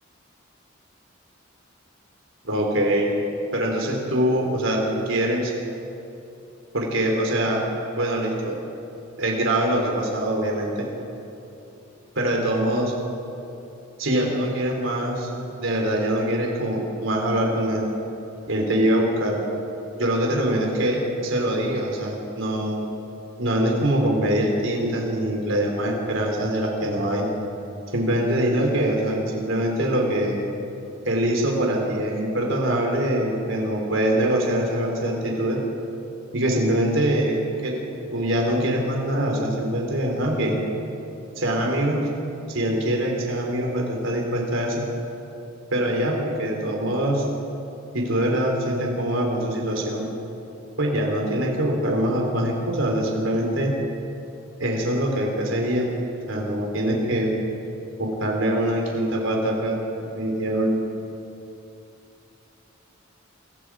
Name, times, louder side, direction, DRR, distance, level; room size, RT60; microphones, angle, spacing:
voice 1, 2.4-3.1 3.5-5.5 6.7-7.6 7.9-8.6 9.2-10.9 12.2-12.9 14.0-15.3 15.6-17.9 18.5-19.4 20.0-22.8 23.4-27.3 27.9-30.4 31.1-35.6 36.3-37.4 37.6-37.8 38.1-40.6 41.4-42.1 42.5-44.8 45.7-47.3 47.9-50.1 50.8-53.7 54.6-55.9 56.3-57.3 58.0-59.8 60.1-60.8, right 1 dB, 70° right, 0 dB, 4.1 m, -23 dB
28.5 x 24.0 x 5.0 m, 2.9 s
head